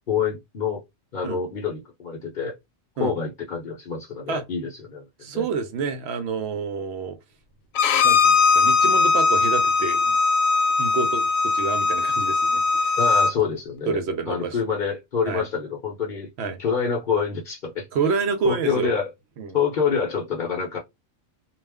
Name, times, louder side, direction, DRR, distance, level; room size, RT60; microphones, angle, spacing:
voice 1, 0.1-0.8 1.1-2.5 3.0-5.0 5.3-5.4 13.0-14.0 14.3-16.3 16.6-17.9 18.4-19.1 19.5-20.8, left 6 dB, 45° left, 0.7 m, -26 dB
voice 2, 5.2-7.2 8.0-10.2 10.8-13.0 13.9-14.6 15.3-15.4 16.4-16.6 17.9-18.9 19.4-19.6, right 5 dB, 65° right, 0.7 m, -28 dB
Bowed string instrument, 7.8-13.3, left 4 dB, 85° left, 1.0 m, -20 dB
2.4 x 2.0 x 3.4 m
omnidirectional pair, 1.4 m